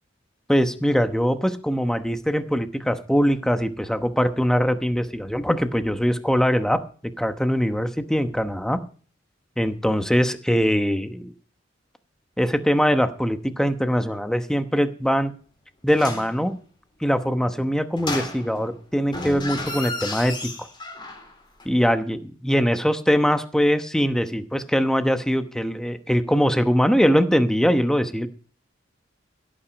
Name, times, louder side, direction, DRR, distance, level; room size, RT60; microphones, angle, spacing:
voice 1, 0.5-8.8 9.6-11.3 12.4-15.3 15.8-16.6 17.0-20.5 21.6-28.3, equal, 5° left, 8 dB, 1.0 m, -22 dB
sound 1, 15.9-16.4 18.0-18.7 19.1-21.3 21.6-21.7, left 2 dB, 25° left, 4.0 m, -32 dB
16.0 x 9.0 x 5.2 m, 0.41 s
head